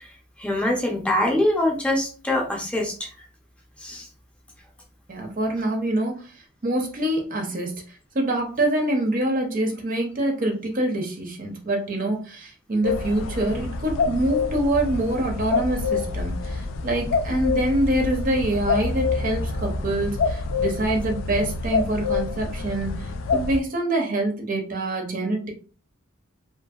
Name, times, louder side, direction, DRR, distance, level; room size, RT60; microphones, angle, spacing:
voice 1, 0.4-3.1 3.8-4.1, left 1 dB, 5° left, -1 dB, 0.6 m, -24 dB
voice 2, 5.1-6.3 6.6-7.8 8.1-25.5, right 1 dB, 45° right, 2 dB, 0.6 m, -25 dB
sound 1, 12.8-23.6, left 4 dB, 85° left, 0.3 m, -27 dB
2.7 x 2.7 x 2.3 m, 0.37 s
head